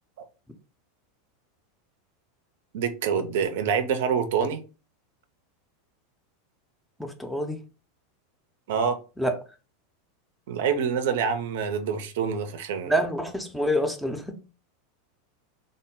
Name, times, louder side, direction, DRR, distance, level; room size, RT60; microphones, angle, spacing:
voice 1, 2.7-4.6 8.7-9.0 10.5-12.9, right 6 dB, 60° right, 0.6 m, -26 dB
voice 2, 7.0-7.6 9.2-9.3 12.9-14.4, equal, ahead, 0.7 m, -27 dB
3.7 x 2.1 x 3.7 m
figure-of-eight pair, 85°, 0 cm